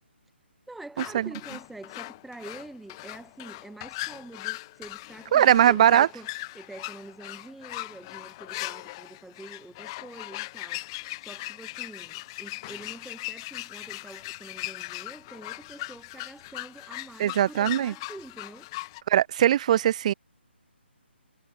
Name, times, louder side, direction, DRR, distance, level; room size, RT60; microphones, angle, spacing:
voice 1, 0.7-6.3 6.5-10.9 11.2-18.7, right 2 dB, ahead, 2.3 m, -45 dB
sound 1, 1.0-19.0, left 21 dB, 25° left, 0.9 m, -39 dB
voice 2, 5.3-6.1 17.2-17.9 19.1-20.1, right 11 dB, 35° right, 0.6 m, -20 dB
figure-of-eight pair, 145°, 6 cm